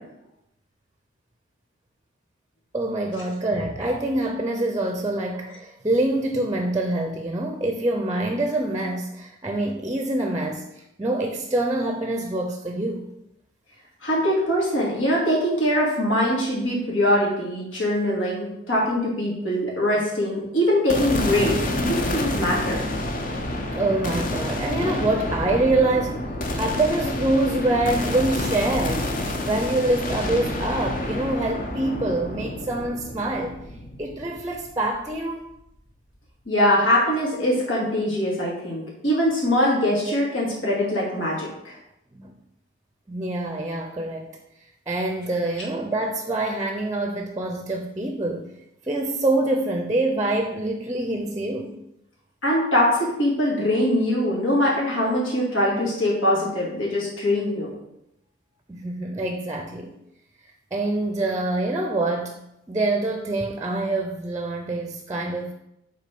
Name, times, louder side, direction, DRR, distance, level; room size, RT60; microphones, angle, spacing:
voice 1, 2.7-13.1 23.7-26.2 26.5-29.1 29.4-33.5 34.0-35.5 42.1-42.3 43.1-44.3 44.9-48.5 48.9-51.7 58.7-59.9 60.7-62.4 62.7-65.5, right 2 dB, 15° right, 4 dB, 0.6 m, -25 dB
voice 2, 14.0-22.8 36.5-41.7 52.4-57.7, left 1 dB, 85° left, -5 dB, 2.7 m, -22 dB
sound 1, 20.9-35.2, left 1 dB, 45° left, 0.8 m, -28 dB
6.1 x 4.1 x 5.9 m, 0.83 s
head